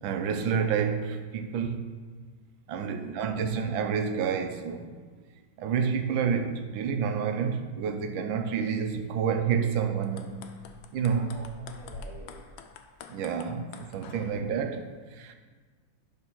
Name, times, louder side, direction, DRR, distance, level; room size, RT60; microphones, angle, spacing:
voice 1, 0.0-1.9 2.7-5.0 5.6-10.3 10.9-11.3 13.1-15.4, right 6 dB, 80° right, 1.3 m, -29 dB
voice 2, 2.8-3.2 11.1-12.4 13.3-13.4 13.8-14.3, right 2 dB, 45° right, 0.8 m, -50 dB
sound 1, 10.0-14.4, left 4 dB, 80° left, 1.3 m, -46 dB
9.0 x 3.4 x 5.8 m
omnidirectional pair, 2.2 m